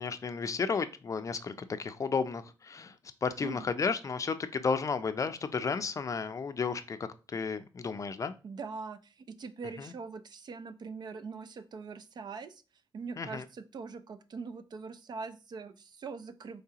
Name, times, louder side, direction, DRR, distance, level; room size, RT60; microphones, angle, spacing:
voice 1, 0.0-2.9 3.2-7.0 7.3-8.3 9.8-9.9 13.2-13.4, left 5 dB, 40° left, 10 dB, 0.4 m, -33 dB
voice 2, 8.4-12.6 12.9-16.6, right 4 dB, 55° right, 11 dB, 0.4 m, -42 dB
4.7 x 3.2 x 2.8 m, 0.32 s
cardioid pair, 100°, 9 cm